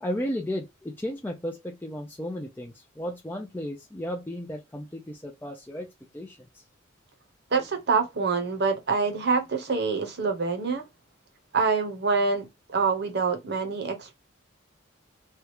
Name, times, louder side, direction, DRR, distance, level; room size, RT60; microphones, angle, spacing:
voice 1, 0.0-6.4, equal, 10° left, 0.4 m, -34 dB
voice 2, 7.5-10.8 11.5-14.1, right 4 dB, 55° right, 0.9 m, -26 dB
3.3 x 2.4 x 2.8 m
head